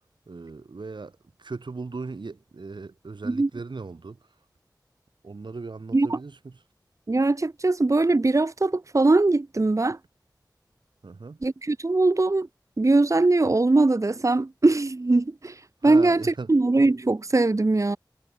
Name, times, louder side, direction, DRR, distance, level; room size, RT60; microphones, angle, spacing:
voice 1, 0.3-1.1 1.4-4.2 5.2-6.5 11.0-11.4 15.9-16.5, right 4 dB, 90° right, 2.0 m, -37 dB
voice 2, 7.1-10.0 11.4-12.5 12.8-18.0, right 2 dB, 45° right, 0.8 m, -21 dB
wide cardioid pair, 45°, 8 cm